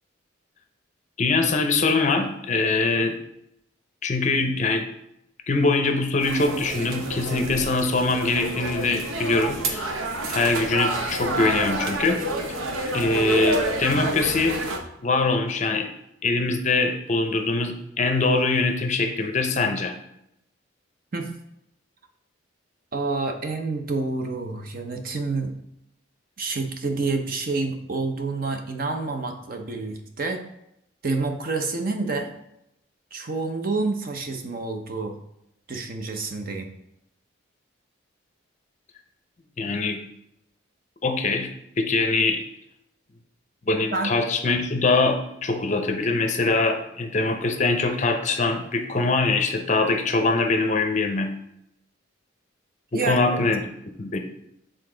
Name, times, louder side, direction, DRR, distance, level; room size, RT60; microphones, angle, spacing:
voice 1, 1.2-3.2 4.0-4.9 5.5-9.9 10.3-12.2 12.9-14.6 15.0-15.9 16.2-20.0 39.6-40.0 41.0-41.5 41.8-42.4 43.7-51.3 52.9-53.6 54.0-54.2, left 3 dB, 35° left, 6 dB, 0.5 m, -23 dB
sound 1, 6.2-14.8, right 2 dB, 85° right, 0.8 m, -29 dB
voice 2, 22.9-25.5 26.4-30.4 31.0-32.3 33.1-35.2 35.7-36.7 43.9-44.1 52.9-53.4, right 3 dB, 45° right, 5 dB, 0.7 m, -28 dB
6.7 x 3.8 x 3.8 m, 0.79 s
head